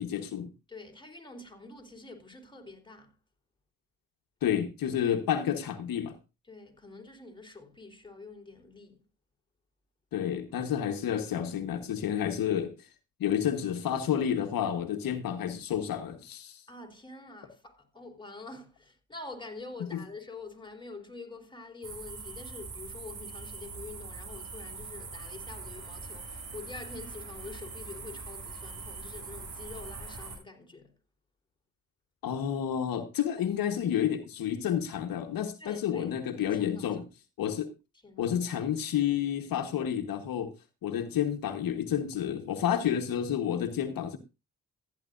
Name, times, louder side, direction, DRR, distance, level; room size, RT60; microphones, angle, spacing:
voice 1, 0.0-0.5 4.4-6.2 10.1-12.8 13.2-16.6 19.9-20.0 32.2-37.1 37.4-37.7 38.2-40.5 40.8-44.2, left 9 dB, 80° left, 1.4 m, -30 dB
voice 2, 0.7-3.1 6.5-9.0 16.7-30.9 35.6-36.1 36.5-36.8 38.0-38.3, left 3 dB, 15° left, 3.9 m, -46 dB
sound 1, 21.8-30.4, right 4 dB, 70° right, 7.4 m, -42 dB
15.0 x 10.5 x 2.6 m
cardioid pair, 65°, 34 cm